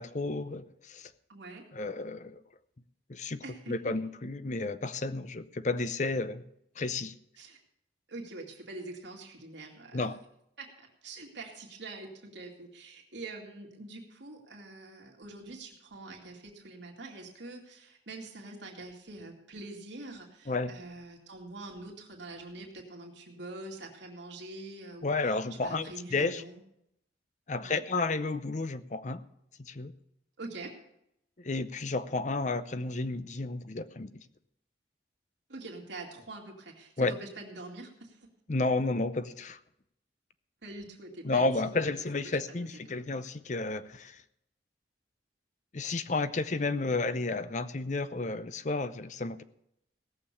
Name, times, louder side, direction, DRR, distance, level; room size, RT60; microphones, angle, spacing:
voice 1, 0.0-1.1 1.7-2.4 3.1-6.4 6.8-7.1 9.9-10.2 20.5-20.7 25.0-26.4 27.5-29.2 29.6-29.9 31.4-34.1 37.0-37.1 38.5-39.6 41.2-44.2 45.7-49.4, left 3 dB, 40° left, 0.6 m, -32 dB
voice 2, 1.3-1.6 3.4-4.0 7.4-7.6 8.1-10.1 10.6-26.6 27.6-27.8 30.4-30.7 35.5-38.3 40.6-43.2, right 2 dB, 75° right, 2.5 m, -45 dB
17.5 x 6.8 x 6.9 m
head